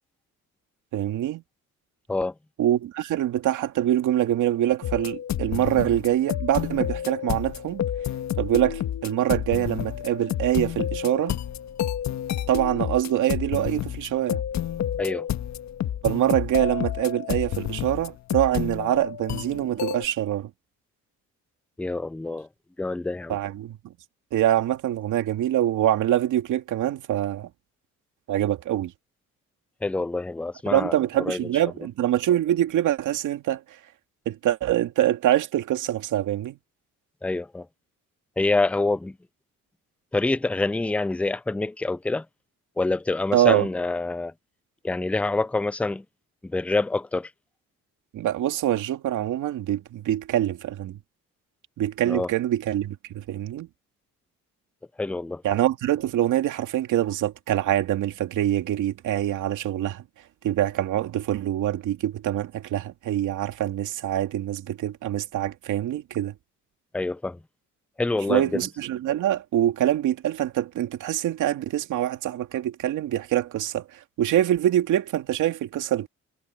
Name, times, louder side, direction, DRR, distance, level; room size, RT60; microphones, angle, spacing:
voice 1, 0.9-1.4 2.6-7.8 8.4-11.4 12.5-14.4 16.0-20.5 23.3-23.9 24.3-27.5 28.3-28.9 30.7-33.6 34.3-36.6 43.3-43.7 48.1-51.0 51.8-53.7 55.4-60.0 60.4-66.3 68.3-76.1, right 12 dB, 80° right, 2.5 m, -24 dB
sound 1, 4.8-20.1, left 10 dB, 65° left, 1.6 m, -30 dB
voice 2, 21.8-22.5 22.8-23.4 29.8-31.7 37.2-37.7 38.4-39.2 40.1-42.3 42.8-44.3 44.8-46.0 46.4-47.3 52.1-52.3 55.0-55.4 66.9-67.4 68.0-68.6, left 2 dB, 5° left, 0.5 m, -26 dB
cardioid pair, 90°, 30 cm